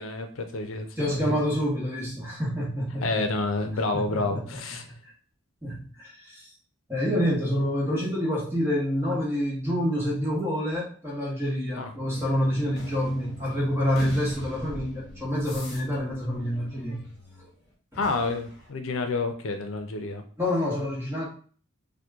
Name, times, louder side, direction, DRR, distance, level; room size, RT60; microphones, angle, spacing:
voice 1, 0.0-1.4 3.0-4.8 11.8-11.9 18.0-20.2, left 3 dB, 80° left, 6 dB, 0.5 m, -29 dB
voice 2, 1.0-3.2 3.9-4.6 4.9-5.0 5.6-6.5 6.9-17.0 17.9-18.0 20.4-21.2, equal, 10° right, -5 dB, 1.0 m, -27 dB
sound 1, 12.1-17.5 17.9-18.7, left 1 dB, 50° left, 0.9 m, -42 dB
2.9 x 2.1 x 3.5 m, 0.43 s
head